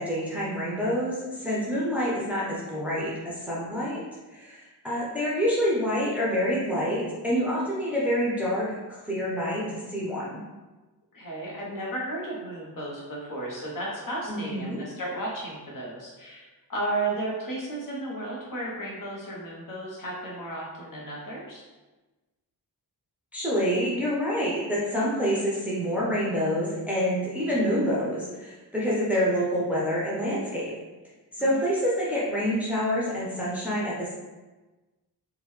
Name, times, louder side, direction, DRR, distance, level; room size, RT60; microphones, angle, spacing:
voice 1, 0.0-4.0 4.3-10.4 14.3-14.8 23.3-30.7 31.3-34.1, equal, 5° right, -7 dB, 0.6 m, -27 dB
voice 2, 11.1-21.6 31.4-31.6, right 1 dB, 55° left, -4 dB, 0.9 m, -34 dB
3.7 x 2.2 x 3.1 m, 1.2 s
wide cardioid pair, 155°, 40 cm